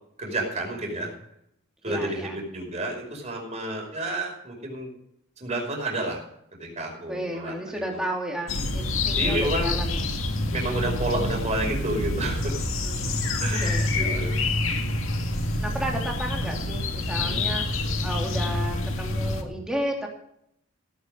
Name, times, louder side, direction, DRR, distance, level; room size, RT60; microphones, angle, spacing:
voice 1, 0.2-1.1 1.8-4.9 5.4-6.2 6.6-8.0 9.2-9.7 10.5-12.6 13.4-14.4 17.2-17.4, right 1 dB, 30° right, 0 dB, 5.2 m, -30 dB
voice 2, 1.9-2.3 7.1-10.0 12.8-13.3 13.6-14.3 15.6-20.1, equal, 5° right, -1 dB, 3.0 m, -33 dB
sound 1, 8.5-19.4, left 2 dB, 65° left, 2.0 m, -27 dB
17.0 x 9.7 x 5.3 m, 0.74 s
head